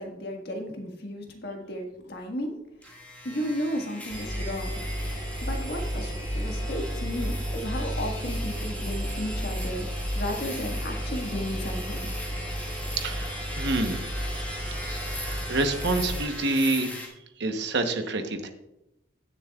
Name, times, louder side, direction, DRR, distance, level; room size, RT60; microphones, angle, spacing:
voice 1, 0.0-2.6 3.2-4.8 5.4-9.9 10.1-12.1, equal, 55° left, 2 dB, 1.6 m, -34 dB
sound 1, 2.8-17.1, left 2 dB, 5° left, 1.5 m, -40 dB
Engine, 4.1-16.2, equal, 20° right, 4.0 m, -32 dB
voice 2, 13.0-14.3 15.0-17.0 17.4-18.5, right 2 dB, 55° right, 6 dB, 1.0 m, -28 dB
16.5 x 7.3 x 2.3 m, 0.88 s
head